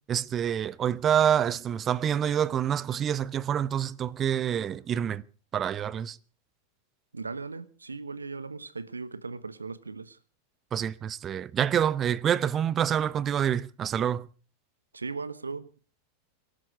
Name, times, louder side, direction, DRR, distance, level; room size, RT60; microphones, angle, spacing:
voice 1, 0.1-5.2 5.5-6.2 10.7-14.3, right 9 dB, 25° right, 0.7 m, -27 dB
voice 2, 7.1-10.2 14.9-15.7, right 4 dB, 75° right, 1.2 m, -38 dB
25.5 x 12.0 x 4.7 m
figure-of-eight pair, 90°, 0 cm